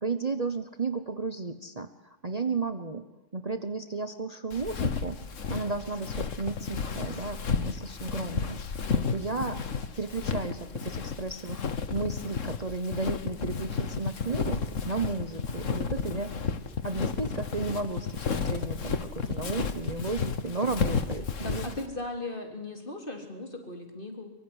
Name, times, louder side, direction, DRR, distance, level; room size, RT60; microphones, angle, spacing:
voice 1, 0.0-3.0 3.3-5.2 5.5-9.6 10.0-11.6 11.9-16.3 16.8-21.7, right 3 dB, 30° right, 9 dB, 1.1 m, -33 dB
Walk footsteps, 4.5-21.9, left 5 dB, 75° left, 1.8 m, -32 dB
voice 2, 8.8-9.2 21.4-24.3, left 2 dB, 40° left, 3 dB, 4.1 m, -38 dB
24.0 x 23.5 x 9.9 m, 0.91 s
omnidirectional pair, 1.3 m